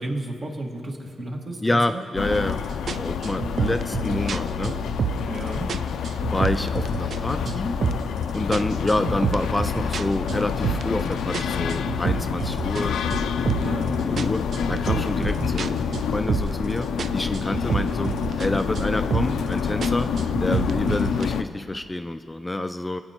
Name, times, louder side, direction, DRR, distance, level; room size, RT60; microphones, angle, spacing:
voice 1, 0.0-2.0 5.3-5.7 8.9-9.0 13.6-14.0, right 1 dB, 45° right, 0 dB, 1.8 m, -32 dB
voice 2, 1.6-2.6 3.0-4.7 6.3-7.8 8.3-13.0 14.0-15.8 16.1-16.9 17.1-20.1 20.4-23.0, left 2 dB, 15° left, 9 dB, 0.3 m, -27 dB
sound 1, 2.2-21.4, left 6 dB, 85° left, 0.4 m, -27 dB
sound 2, 2.3-2.5 2.9-5.4 5.7-7.2 7.5-8.2 8.5-11.0 11.3-13.8 14.2-16.7 17.0-18.5 18.8-19.5 19.8-21.3, right 6 dB, 65° right, 0.3 m, -29 dB
21.0 x 8.6 x 2.9 m, 2.4 s
cardioid pair, 70°, 0 cm